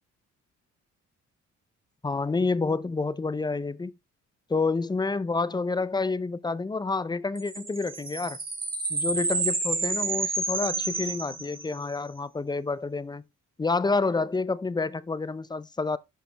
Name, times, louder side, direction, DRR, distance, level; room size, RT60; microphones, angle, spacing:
voice 1, 2.0-3.9 4.5-8.4 8.9-13.2 13.6-16.0, left 3 dB, 15° left, 0.5 m, -28 dB
sound 1, 7.4-12.0, right 3 dB, 30° right, 2.4 m, -30 dB
11.5 x 5.0 x 3.3 m
cardioid pair, 90°, 30 cm